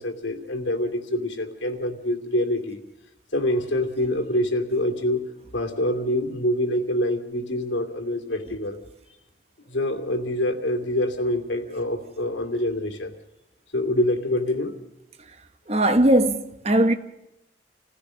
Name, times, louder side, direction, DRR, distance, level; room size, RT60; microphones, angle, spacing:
voice 1, 0.0-2.8 3.3-5.3 5.5-8.8 9.7-13.1 13.7-14.7, left 1 dB, 90° left, 2.6 m, -25 dB
voice 2, 15.7-16.9, right 1 dB, 35° right, 1.2 m, -19 dB
27.5 x 16.0 x 6.4 m
head